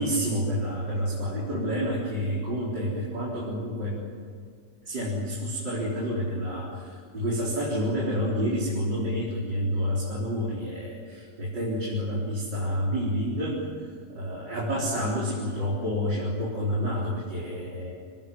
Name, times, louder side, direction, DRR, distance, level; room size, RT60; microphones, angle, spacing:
voice 1, 0.0-4.0 4.9-13.6 14.1-17.9, equal, 90° right, -5 dB, 4.9 m, -29 dB
25.5 x 19.0 x 9.6 m, 2.2 s
omnidirectional pair, 1.9 m